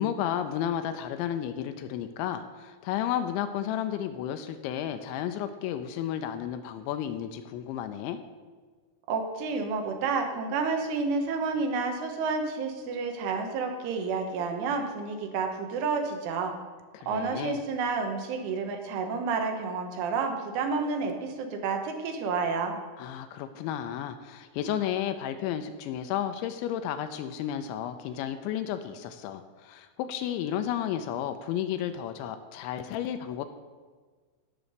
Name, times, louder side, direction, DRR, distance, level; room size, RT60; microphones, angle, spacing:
voice 1, 0.0-8.2 16.9-17.6 23.0-33.4, left 10 dB, 85° left, 8 dB, 2.7 m, -32 dB
voice 2, 9.1-16.5 17.1-22.8, right 4 dB, 80° right, 4 dB, 3.6 m, -30 dB
17.0 x 6.0 x 5.1 m, 1.5 s
omnidirectional pair, 5.8 m